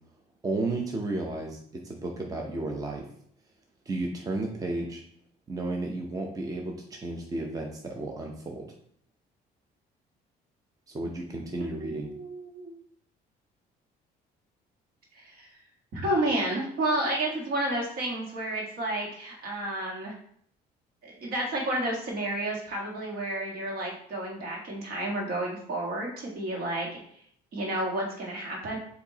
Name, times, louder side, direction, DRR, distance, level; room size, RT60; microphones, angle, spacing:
voice 1, 0.4-3.1 3.9-5.0 5.5-8.7 10.9-12.1, right 2 dB, 20° right, 1 dB, 0.7 m, -33 dB
voice 2, 11.7-12.8 15.1-15.6 15.9-20.1 21.0-26.9 27.5-28.8, right 1 dB, 65° right, -2 dB, 1.5 m, -31 dB
4.5 x 2.7 x 4.0 m, 0.65 s
cardioid pair, 110°, 17 cm